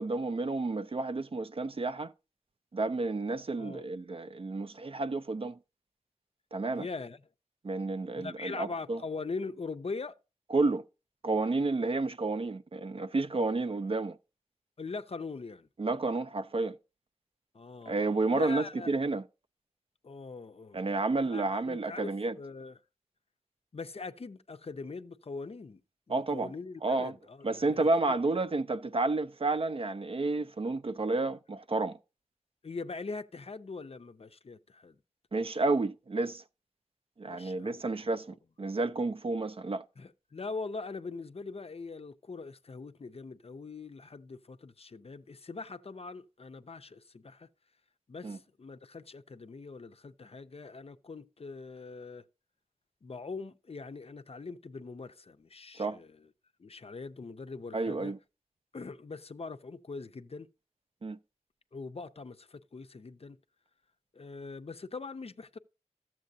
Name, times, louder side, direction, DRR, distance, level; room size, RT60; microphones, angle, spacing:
voice 1, 0.0-2.1 2.7-5.6 6.5-6.9 7.6-9.0 10.5-10.8 11.2-14.2 15.8-16.8 17.9-19.2 20.7-22.3 26.1-26.5 26.8-27.1 27.4-32.0 35.3-36.4 37.2-39.8 48.2-48.4 55.8-56.0 57.7-58.2 61.0-61.2, right 3 dB, 50° right, 0.4 m, -31 dB
voice 2, 6.8-7.2 8.2-10.1 14.8-15.7 17.5-18.9 20.0-22.8 23.7-25.8 26.1-28.2 32.6-35.0 37.2-37.8 40.0-47.5 48.1-52.2 53.0-56.3 56.6-58.1 58.7-60.5 61.7-63.4 64.1-65.6, left 4 dB, 55° left, 0.4 m, -42 dB
13.0 x 7.4 x 2.6 m
wide cardioid pair, 55°, 12 cm